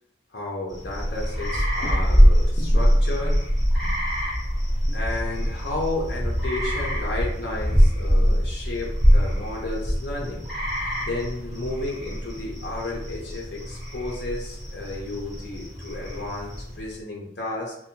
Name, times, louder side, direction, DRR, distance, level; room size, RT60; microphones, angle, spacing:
voice 1, 0.3-3.4 3.8-4.0 4.9-10.4 11.0-17.8, left 2 dB, 60° left, -2 dB, 0.5 m, -32 dB
sound 1, 0.7-16.9, equal, ahead, 0.7 m, -23 dB
2.6 x 2.1 x 2.7 m, 0.74 s
head